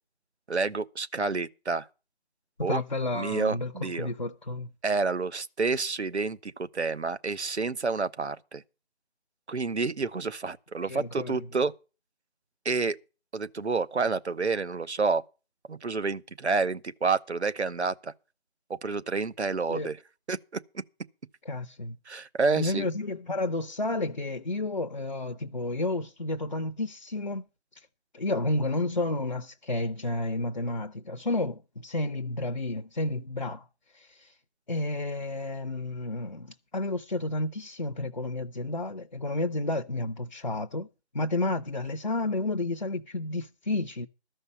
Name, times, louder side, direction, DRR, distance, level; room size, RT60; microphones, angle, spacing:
voice 1, 0.5-1.9 2.6-2.8 3.1-4.1 4.8-8.6 9.5-11.7 12.6-13.0 13.3-15.2 15.7-18.1 18.7-20.0 20.3-20.6 22.1-22.9, right 4 dB, 90° right, 0.9 m, -29 dB
voice 2, 2.7-4.7 10.8-11.5 19.7-19.9 21.5-22.0 22.6-27.4 27.7-27.9 28.1-33.7 33.9-34.3 34.7-40.9 41.1-44.1, left 2 dB, 45° left, 0.6 m, -31 dB
13.5 x 5.5 x 8.4 m
figure-of-eight pair, 170°, 33 cm